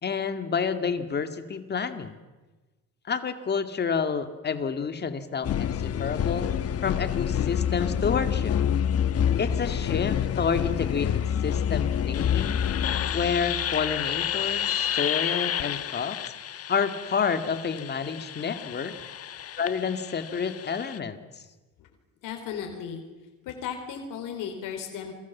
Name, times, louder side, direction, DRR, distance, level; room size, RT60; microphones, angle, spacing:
voice 1, 0.0-2.2 3.1-6.5 6.8-8.5 9.4-12.6 13.1-16.2 16.7-18.9 19.6-21.2, left 6 dB, 30° left, 8 dB, 2.2 m, -29 dB
sound 1, 5.4-21.0, left 9 dB, 50° left, 1.2 m, -28 dB
voice 2, 22.2-23.0 23.4-25.1, left 7 dB, 90° left, 4 dB, 4.2 m, -35 dB
29.5 x 23.5 x 7.4 m, 1.2 s
cardioid pair, 150°, 31 cm